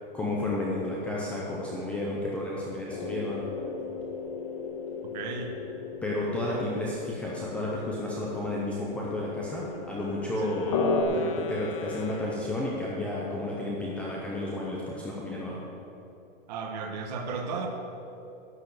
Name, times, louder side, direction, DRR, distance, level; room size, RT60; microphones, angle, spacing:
voice 1, 0.1-3.4 6.0-15.6, left 1 dB, 5° left, -4 dB, 0.4 m, -32 dB
sound 1, 2.9-11.0, left 5 dB, 45° left, 1.7 m, -35 dB
voice 2, 5.0-5.5 6.5-6.6 10.4-10.5 16.5-17.7, right 5 dB, 45° right, 3 dB, 1.5 m, -35 dB
Wind instrument woodwind instrument, 9.6-13.2, left 6 dB, 65° left, 0.7 m, -44 dB
11.5 x 6.6 x 8.2 m, 2.8 s
supercardioid pair, 175°, 29 cm